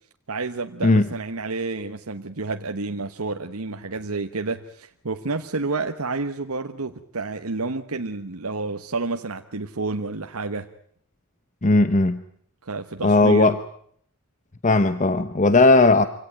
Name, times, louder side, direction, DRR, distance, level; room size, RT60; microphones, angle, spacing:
voice 1, 0.3-10.7 12.6-13.6, right 3 dB, 80° right, 6 dB, 1.2 m, -30 dB
voice 2, 11.6-12.2 13.0-13.6 14.6-16.1, left 3 dB, 35° left, 12 dB, 0.9 m, -17 dB
26.0 x 17.0 x 8.9 m, 0.65 s
head